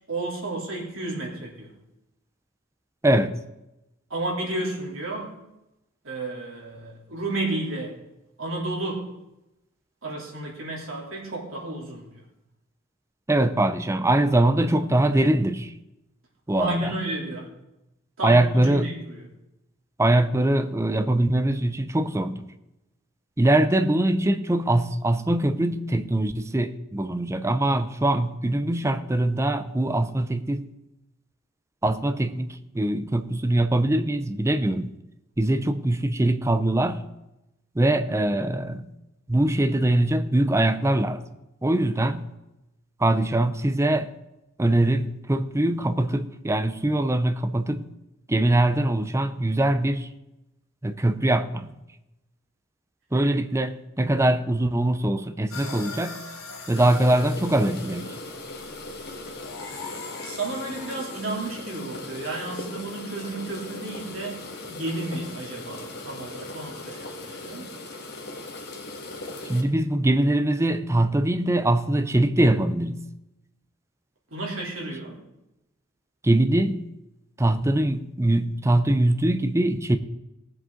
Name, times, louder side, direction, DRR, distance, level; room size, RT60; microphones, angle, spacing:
voice 1, 0.1-1.7 4.1-5.3 6.0-8.0 8.4-9.1 10.0-12.1 16.6-17.5 18.2-19.3 60.2-64.4 64.6-67.7 74.3-75.2, right 2 dB, 80° right, -2 dB, 3.2 m, -32 dB
voice 2, 3.0-3.4 13.3-15.7 16.5-17.0 18.2-18.9 20.0-22.5 23.4-30.7 31.8-34.9 35.4-37.0 37.8-38.9 39.3-41.2 41.6-42.3 43.0-44.1 44.6-47.8 48.3-50.1 50.8-51.7 53.1-56.2 56.7-58.1 69.4-73.0 76.2-76.8 77.4-80.0, right 1 dB, 15° right, 9 dB, 0.5 m, -22 dB
sound 1, 55.5-61.3, left 3 dB, 85° left, 2.2 m, -41 dB
sound 2, 56.8-69.6, left 2 dB, 55° left, 1.8 m, -39 dB
18.5 x 7.8 x 3.8 m, 0.93 s
head